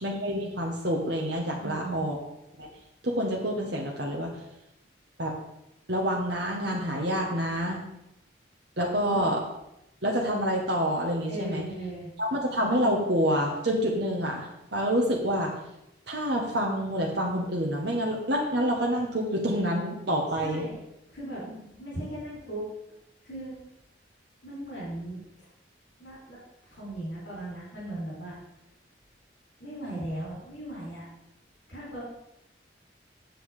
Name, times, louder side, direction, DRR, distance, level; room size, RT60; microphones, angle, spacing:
voice 1, 0.0-2.2 2.6-2.7 3.0-4.3 5.2-5.4 5.9-7.8 8.8-9.4 10.0-11.6 12.2-15.5 16.1-20.6 21.5-21.6, equal, 65° right, -1 dB, 1.4 m, -27 dB
voice 2, 1.6-2.1 9.0-9.3 11.3-12.1 20.4-20.8 21.1-21.4 21.8-22.7 23.2-23.6 24.4-25.2 26.0-26.4 26.6-28.4 29.6-31.1 31.7-32.0, right 1 dB, 75° left, -6 dB, 3.8 m, -37 dB
7.8 x 7.7 x 4.9 m, 0.86 s
head